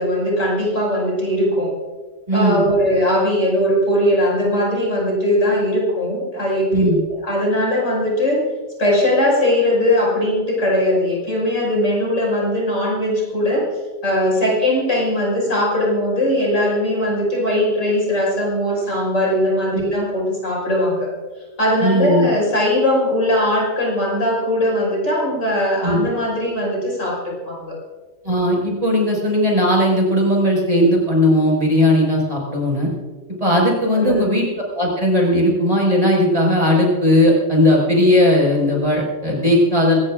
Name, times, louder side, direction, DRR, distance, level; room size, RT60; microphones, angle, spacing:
voice 1, 0.0-1.7 2.3-6.8 7.1-8.4 8.8-13.7 14.0-21.1 21.6-27.8 34.0-34.4, left 1 dB, 80° left, -3 dB, 6.6 m, -19 dB
voice 2, 2.3-2.6 6.7-7.0 19.7-19.9 21.8-22.3 25.8-26.0 28.2-32.9 33.4-40.0, left 1 dB, 30° right, -3 dB, 5.5 m, -17 dB
23.0 x 20.0 x 2.5 m, 1.4 s
omnidirectional pair, 1.3 m